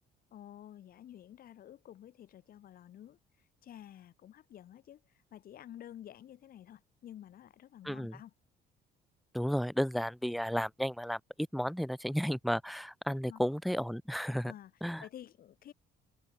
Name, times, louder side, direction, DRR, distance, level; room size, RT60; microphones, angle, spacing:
voice 1, 0.3-3.2 3.6-5.0 5.3-8.3 13.1-13.4 14.4-14.7 15.0-15.7, left 11 dB, 60° left, 5.9 m, -51 dB
voice 2, 7.8-8.2 9.3-11.2 11.5-14.5 14.8-15.0, equal, ahead, 0.5 m, -33 dB
cardioid pair, 110°, 17 cm